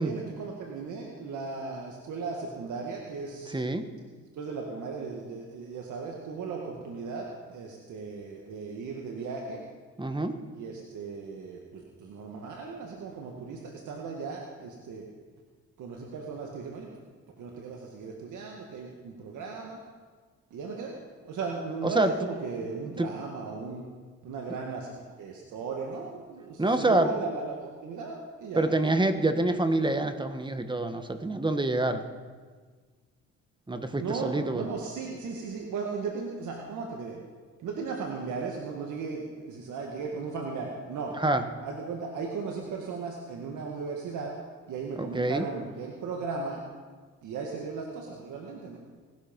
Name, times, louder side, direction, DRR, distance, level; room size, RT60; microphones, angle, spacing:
voice 1, 0.0-3.5 4.3-9.6 10.6-15.0 15.8-16.9 17.4-19.8 20.5-20.9 21.3-23.8 24.2-28.6 33.9-37.2 37.6-41.1 41.6-44.3 44.7-46.6 47.2-48.8, right 4 dB, 80° right, 0 dB, 2.0 m, -36 dB
voice 2, 3.5-3.9 10.0-10.4 21.8-22.1 23.0-23.1 26.6-27.1 28.5-32.0 33.7-34.7 41.2-41.4 45.0-45.5, right 2 dB, 15° right, 8 dB, 1.4 m, -26 dB
19.0 x 12.5 x 5.4 m, 1.5 s
cardioid pair, 90°, 30 cm